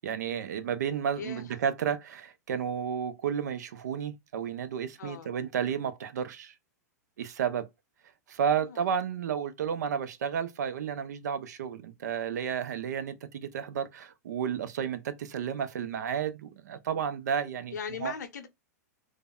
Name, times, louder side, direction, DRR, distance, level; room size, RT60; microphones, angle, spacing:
voice 1, 0.0-6.5 7.2-7.7 8.3-17.7 18.0-18.1, right 8 dB, 75° right, 0.5 m, -32 dB
voice 2, 1.2-1.5 5.0-5.3 8.4-8.9 17.7-18.5, left 7 dB, 80° left, 0.7 m, -39 dB
3.3 x 2.1 x 2.2 m
hypercardioid pair, 115°, 9 cm